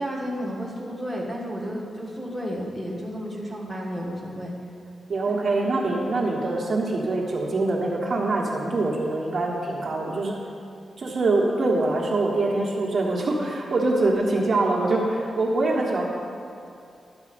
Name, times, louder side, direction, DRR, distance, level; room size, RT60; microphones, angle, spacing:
voice 1, 0.0-4.5 5.3-5.4 9.8-9.9, equal, 5° left, -4 dB, 1.4 m, -32 dB
voice 2, 5.1-10.4 11.0-16.1, right 2 dB, 45° right, -3 dB, 1.4 m, -24 dB
11.5 x 4.9 x 6.8 m, 2.5 s
wide cardioid pair, 160°, 0 cm